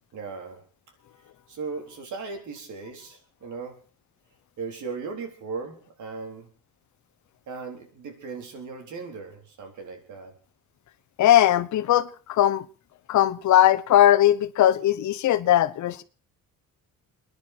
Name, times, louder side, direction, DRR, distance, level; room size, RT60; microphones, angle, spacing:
voice 1, 0.1-0.6 1.5-3.8 4.6-6.5 7.5-10.3, right 4 dB, 60° right, 4.0 m, -37 dB
voice 2, 11.2-12.7 13.1-16.0, left 12 dB, 60° left, 1.0 m, -19 dB
29.5 x 10.5 x 4.5 m
cardioid pair, 175°, 33 cm